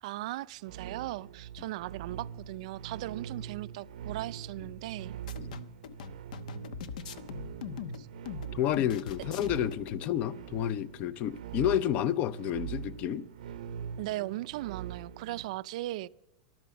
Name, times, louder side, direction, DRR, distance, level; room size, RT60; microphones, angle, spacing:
voice 1, 0.0-5.2 7.9-8.1 14.0-16.1, right 17 dB, 60° right, 0.4 m, -38 dB
sound 1, 0.6-15.5, right 9 dB, 90° right, 0.8 m, -43 dB
sound 2, 5.3-10.1, left 7 dB, 80° left, 1.0 m, -41 dB
voice 2, 8.5-13.3, left 11 dB, 35° left, 0.5 m, -30 dB
14.0 x 12.0 x 7.0 m
supercardioid pair, 155°, 4 cm